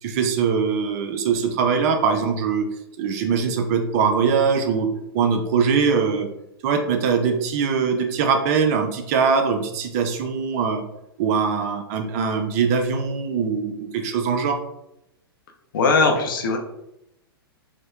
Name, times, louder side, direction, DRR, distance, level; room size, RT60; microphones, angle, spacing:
voice 1, 0.0-2.7 3.0-4.9 5.1-6.3 6.6-10.8 11.2-14.6, right 6 dB, 40° right, 5 dB, 0.4 m, -22 dB
voice 2, 15.7-16.6, left 4 dB, 60° left, 2 dB, 0.6 m, -19 dB
4.3 x 2.1 x 2.3 m, 0.83 s
figure-of-eight pair, 110°, 13 cm